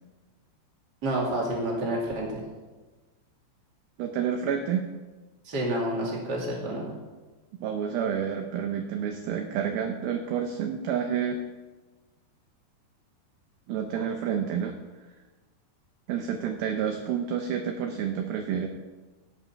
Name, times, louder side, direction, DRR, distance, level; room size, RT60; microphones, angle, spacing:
voice 1, 1.0-2.4 5.4-6.9, right 1 dB, 30° right, -3 dB, 2.2 m, -29 dB
voice 2, 4.0-4.9 7.5-11.4 13.7-14.8 16.1-18.7, right 8 dB, 80° right, 5 dB, 2.2 m, -29 dB
16.5 x 5.4 x 5.7 m, 1.3 s
omnidirectional pair, 5.1 m